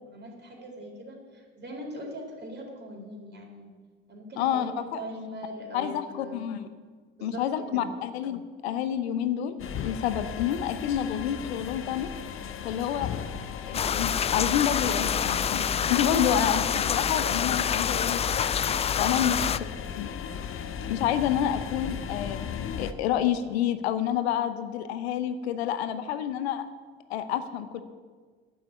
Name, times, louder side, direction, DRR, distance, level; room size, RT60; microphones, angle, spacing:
voice 1, 0.0-3.7 4.1-6.4 7.2-7.5 7.7-7.9 19.1-19.4, equal, 30° right, 0 dB, 4.0 m, -41 dB
voice 2, 4.4-5.0 5.7-6.7 7.2-9.5 9.8-12.1 12.6-13.1 13.6-18.5 19.0-19.5 20.0-20.1 20.9-22.4 22.8-26.7 27.1-27.8, left 9 dB, 75° left, 11 dB, 0.9 m, -28 dB
sound 1, 9.6-22.9, left 8 dB, 40° left, 0.9 m, -37 dB
sound 2, 13.7-19.6, left 8 dB, 20° left, 0.3 m, -27 dB
9.7 x 7.3 x 9.2 m, 1.5 s
figure-of-eight pair, 60°, 32 cm